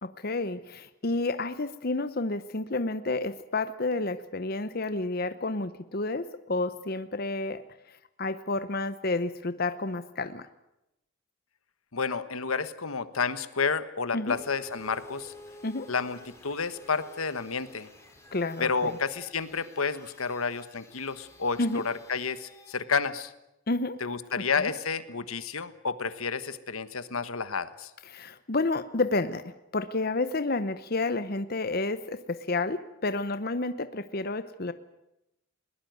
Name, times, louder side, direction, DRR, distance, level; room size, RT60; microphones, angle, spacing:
voice 1, 0.0-7.6 8.2-10.5 14.1-14.4 15.6-15.9 18.3-19.0 21.6-21.8 23.7-24.0 24.6-24.7 28.1-34.7, left 2 dB, 45° left, 12 dB, 0.9 m, -30 dB
voice 2, 11.9-15.3 15.9-17.9 18.6-23.3 24.0-27.9, left 5 dB, 90° left, 13 dB, 1.3 m, -30 dB
sound 1, 14.3-22.8, left 2 dB, 15° left, 4.1 m, -51 dB
21.0 x 20.0 x 9.4 m, 0.89 s
head